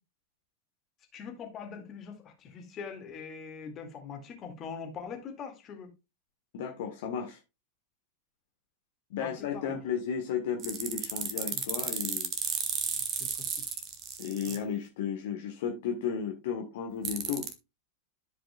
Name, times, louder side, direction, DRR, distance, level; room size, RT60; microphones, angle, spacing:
voice 1, 1.1-5.9 9.2-9.8 11.5-11.6 13.2-13.3, left 6 dB, 30° left, 2.1 m, -42 dB
voice 2, 6.5-7.4 9.1-12.3 14.2-17.5, left 7 dB, 55° left, 1.2 m, -34 dB
sound 1, 10.6-14.6 17.0-17.5, right 7 dB, 30° right, 1.2 m, -33 dB
13.5 x 5.0 x 2.3 m
figure-of-eight pair, 90°, 0 cm